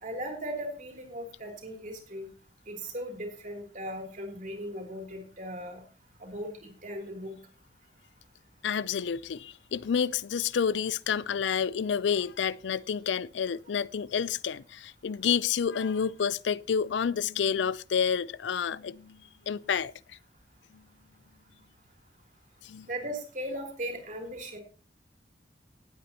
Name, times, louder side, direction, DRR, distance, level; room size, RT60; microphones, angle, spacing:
voice 1, 0.0-2.3 2.7-5.8 6.2-7.3 22.9-24.6, equal, 45° right, 3.0 m, -38 dB
voice 2, 8.6-19.2 19.5-19.9 22.6-22.9, left 7 dB, 85° left, 0.4 m, -29 dB
18.5 x 8.4 x 2.9 m
head